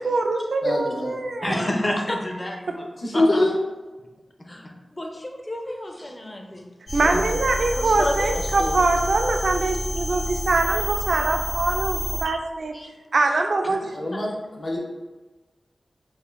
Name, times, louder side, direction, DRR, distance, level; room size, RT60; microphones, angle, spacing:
voice 1, 0.0-1.7 2.7-2.8 6.9-12.7 13.1-13.9, right 3 dB, 70° right, 4 dB, 0.3 m, -23 dB
voice 2, 0.6-1.2 3.0-3.6 8.3-8.7 13.8-14.8, left 1 dB, 70° left, -3 dB, 1.0 m, -24 dB
voice 3, 1.4-2.9 3.1-3.2 4.5-6.6 6.9-7.2 7.8-8.5 12.7-12.9 14.1-14.2, left 1 dB, 25° left, 2 dB, 0.4 m, -30 dB
sound 1, 6.9-12.2, left 1 dB, 45° left, 0.8 m, -28 dB
4.5 x 2.5 x 2.4 m, 1.2 s
wide cardioid pair, 100°, 0 cm